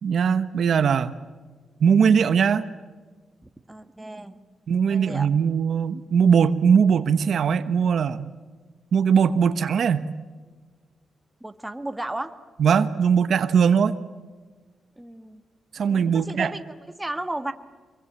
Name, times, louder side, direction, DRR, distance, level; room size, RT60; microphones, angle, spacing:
voice 1, 0.0-1.1 1.8-2.6 4.7-8.3 8.9-10.1 12.6-13.9 15.7-16.5, right 7 dB, 65° right, 12 dB, 1.0 m, -20 dB
voice 2, 3.4-4.4 4.9-5.3 11.4-12.3 15.0-15.4 15.8-17.5, right 1 dB, 10° right, 8 dB, 1.5 m, -34 dB
25.0 x 23.0 x 8.8 m, 1.4 s
cardioid pair, 115°, 0 cm